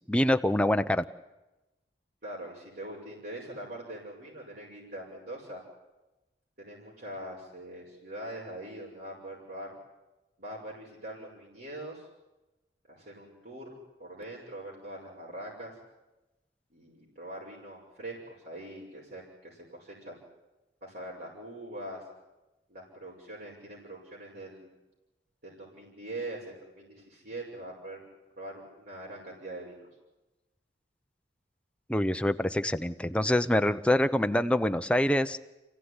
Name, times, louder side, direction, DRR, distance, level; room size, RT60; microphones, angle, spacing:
voice 1, 0.1-1.0 31.9-35.4, left 1 dB, 5° left, 9 dB, 0.8 m, -25 dB
voice 2, 2.2-5.6 6.6-9.7 10.4-12.1 12.9-15.8 16.7-20.2 20.8-22.0 22.7-24.7 25.4-28.0 28.4-29.9, right 1 dB, 55° right, -5 dB, 6.0 m, -43 dB
28.5 x 16.5 x 9.8 m, 1.0 s
head